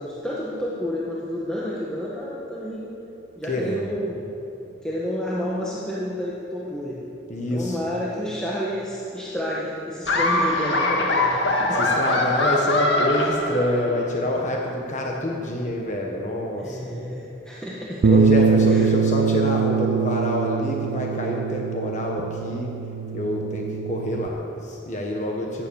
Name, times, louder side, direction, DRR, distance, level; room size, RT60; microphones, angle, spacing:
voice 1, 0.0-2.9 3.4-4.2 4.8-7.0 7.5-11.8 16.5-18.2 18.7-18.9, left 1 dB, 5° left, -7 dB, 1.5 m, -30 dB
voice 2, 3.4-3.9 7.3-7.9 10.4-10.6 11.7-16.9 18.1-22.7 23.1-25.7, left 1 dB, 40° left, 0 dB, 1.3 m, -26 dB
Laughter, 10.1-14.1, left 2 dB, 65° left, 1.9 m, -22 dB
Bass guitar, 18.0-24.3, right 5 dB, 90° right, 0.5 m, -23 dB
15.5 x 11.5 x 7.1 m, 2.9 s
head